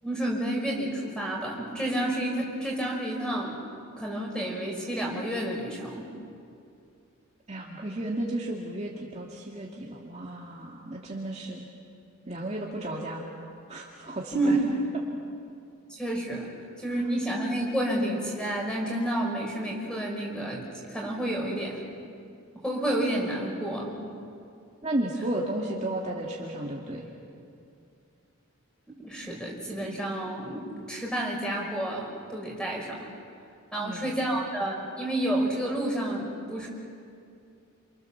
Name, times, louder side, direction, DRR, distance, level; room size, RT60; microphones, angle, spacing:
voice 1, 0.0-3.6 4.0-6.1 14.3-14.6 15.9-16.5 16.8-21.8 22.5-24.0 28.9-33.0 33.7-36.7, right 1 dB, 5° left, -1 dB, 5.6 m, -30 dB
voice 2, 7.5-11.6 12.3-13.2 13.7-14.6 24.8-27.0 33.8-34.1, right 1 dB, 30° right, -3 dB, 2.4 m, -33 dB
28.5 x 28.5 x 7.2 m, 2.5 s
head